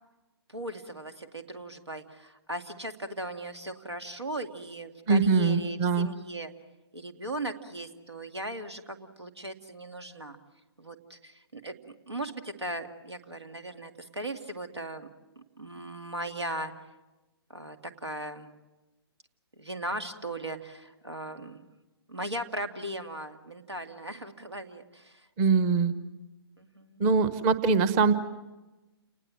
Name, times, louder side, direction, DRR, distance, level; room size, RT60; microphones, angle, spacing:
voice 1, 0.5-6.5 6.9-10.4 10.8-15.1 15.4-16.7 17.5-18.5 19.6-21.6 22.1-25.3 26.6-27.0, right 1 dB, 80° right, 7 dB, 2.3 m, -38 dB
voice 2, 5.1-6.1 25.4-25.9 27.0-28.1, right 5 dB, 20° right, 13 dB, 1.1 m, -23 dB
29.5 x 19.5 x 7.6 m, 1.1 s
figure-of-eight pair, 130°, 14 cm